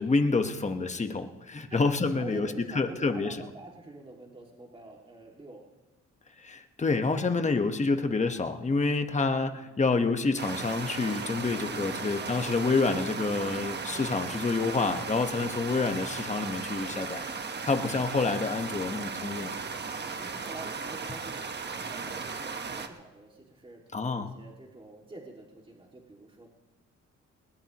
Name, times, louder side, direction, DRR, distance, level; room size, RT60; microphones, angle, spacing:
voice 1, 0.0-2.5 2.7-3.4 6.4-17.2 17.6-19.5 23.9-24.3, left 3 dB, 25° left, 6 dB, 1.3 m, -28 dB
voice 2, 2.1-5.7 9.1-9.7 11.7-12.7 15.3-15.6 17.8-18.0 18.7-19.0 20.1-26.5, right 2 dB, 15° right, -1 dB, 2.4 m, -47 dB
sound 1, 10.4-22.9, right 5 dB, 35° right, 1.3 m, -36 dB
20.5 x 19.0 x 3.1 m, 1.1 s
cardioid pair, 90°, 30 cm